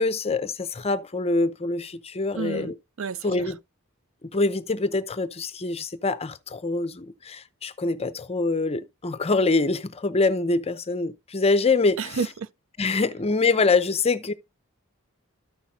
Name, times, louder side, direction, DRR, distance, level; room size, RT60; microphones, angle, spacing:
voice 1, 0.0-2.7 3.2-3.6 4.3-12.2 12.8-14.3, left 3 dB, 30° left, 0.6 m, -24 dB
voice 2, 2.3-2.7 3.0-3.5 12.0-12.5, right 5 dB, 70° right, 0.5 m, -30 dB
13.5 x 5.7 x 2.5 m
head